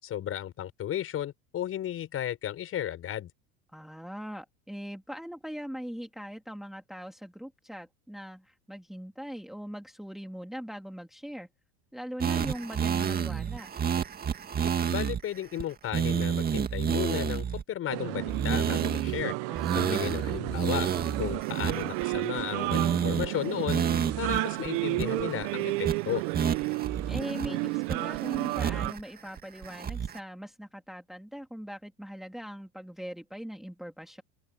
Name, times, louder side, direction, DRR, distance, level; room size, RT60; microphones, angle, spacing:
voice 1, 0.0-3.3 14.9-19.3 19.7-20.9 21.2-23.8 24.2-26.2, left 11 dB, 40° left, 5.9 m, -34 dB
voice 2, 3.7-11.5 11.9-13.7 19.5-20.0 27.1-34.2, equal, ahead, 2.6 m, -41 dB
sound 1, 12.2-15.2 15.6-15.7 15.9-17.6 18.3-19.2 19.6-22.4 22.7-23.3 23.7-24.4 24.7-24.8 25.0-25.4 25.9-26.0 26.3-27.5 27.9-29.0 29.4-30.2, right 8 dB, 25° right, 2.1 m, -29 dB
sound 2, 17.9-28.9, right 23 dB, 65° right, 1.2 m, -32 dB
open air
supercardioid pair, 120°, 34 cm